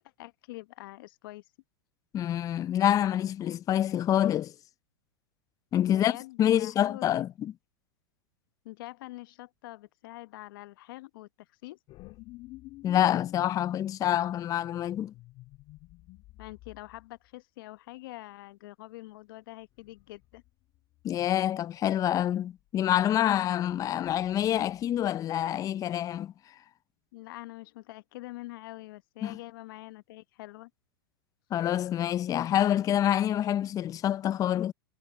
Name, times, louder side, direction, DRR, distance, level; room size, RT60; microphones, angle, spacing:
voice 1, 0.0-1.4 5.8-7.2 8.6-11.3 11.6-11.8 16.4-20.4 27.1-30.7, left 19 dB, 60° left, 1.0 m, -45 dB
voice 2, 2.1-4.5 5.7-7.5 12.8-15.1 21.0-26.3 29.2-29.4 31.5-34.7, left 11 dB, 25° left, 0.6 m, -27 dB
sound 1, 11.9-17.1 19.8-20.5 20.7-21.2 23.7-25.1, left 19 dB, 45° left, 3.6 m, -52 dB
hypercardioid pair, 105°, 13 cm